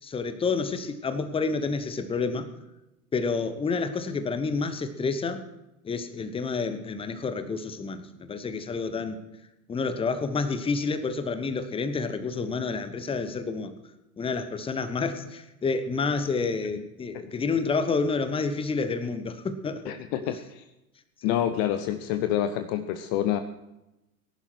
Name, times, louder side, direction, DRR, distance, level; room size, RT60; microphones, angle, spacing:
voice 1, 0.0-2.5 3.1-5.4 5.8-9.2 9.7-13.7 14.2-19.9 20.2-20.4 21.2-21.4, left 4 dB, 10° left, 11 dB, 1.0 m, -29 dB
voice 2, 19.9-20.6 21.2-23.4, left 11 dB, 35° left, 10 dB, 0.8 m, -27 dB
18.0 x 11.0 x 4.6 m, 0.94 s
figure-of-eight pair, 85°, 47 cm